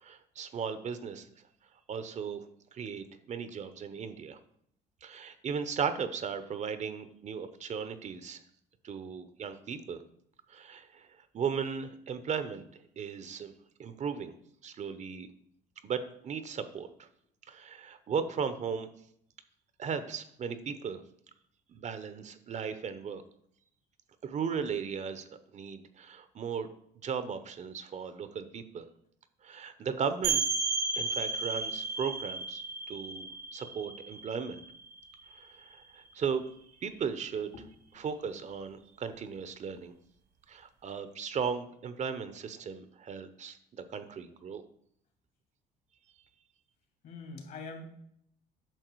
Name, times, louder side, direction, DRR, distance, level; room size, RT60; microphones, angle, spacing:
voice 1, 0.0-1.3 1.9-2.4 2.7-4.4 5.0-8.4 8.8-10.0 10.5-11.1 11.3-12.7 13.0-13.5 13.8-14.3 14.6-15.3 15.8-17.1 17.5-18.9 19.8-21.0 21.7-23.2 24.2-25.2 25.5-26.7 27.0-28.8 29.4-30.4 31.0-34.6 35.3-36.4 36.8-37.5 37.9-39.9 40.5-44.6, right 6 dB, 45° right, 11 dB, 0.8 m, -36 dB
sound 1, 30.2-35.7, right 4 dB, 85° right, 2.0 m, -34 dB
voice 2, 37.5-38.0 47.0-47.8, left 3 dB, 60° left, 3 dB, 2.8 m, -45 dB
9.0 x 6.0 x 4.6 m, 0.70 s
cardioid pair, 110°, 17 cm